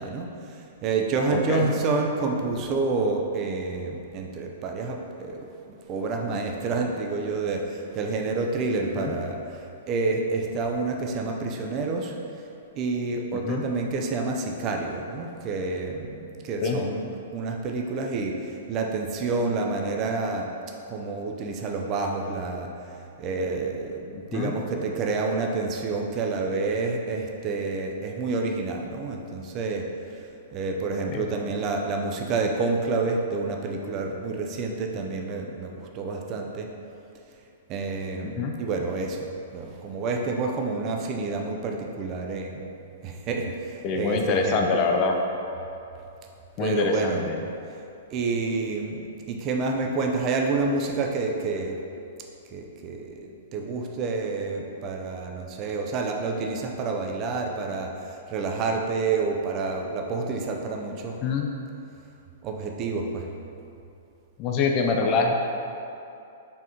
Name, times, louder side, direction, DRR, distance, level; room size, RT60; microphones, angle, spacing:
voice 1, 0.0-12.1 12.8-17.0 17.3-20.5 20.9-22.7 23.2-30.2 30.5-36.7 37.7-42.6 43.0-44.6 46.6-47.2 48.1-51.8 52.5-61.2 62.4-63.3, right 3 dB, 30° right, 2 dB, 0.4 m, -28 dB
voice 2, 1.3-1.7 8.8-9.1 13.3-13.6 16.6-16.8 24.3-24.5 31.1-31.3 38.2-38.5 43.8-45.2 46.6-47.4 61.2-61.5 64.4-65.3, left 4 dB, 35° left, 2 dB, 0.3 m, -25 dB
4.2 x 3.5 x 2.8 m, 2.7 s
figure-of-eight pair, 105°, 0 cm